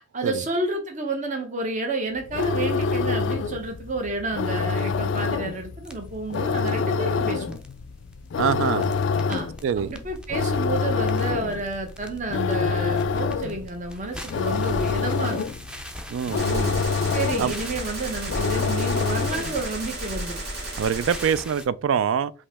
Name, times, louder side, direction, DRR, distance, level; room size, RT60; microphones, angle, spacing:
voice 1, 0.0-7.6 9.3-15.4 17.1-20.4, right 2 dB, 40° right, 0.8 m, -30 dB
sound 1, 2.2-19.7, left 5 dB, 65° left, 0.3 m, -26 dB
sound 2, 5.8-21.7, equal, 5° right, 0.5 m, -41 dB
voice 2, 8.4-8.9 9.6-9.9 16.1-16.8 17.4-17.5 20.8-22.3, right 7 dB, 75° right, 0.3 m, -24 dB
Gunshot gunfire, 16.4-21.4, right 2 dB, 55° right, 1.2 m, -35 dB
5.2 x 2.8 x 3.4 m
head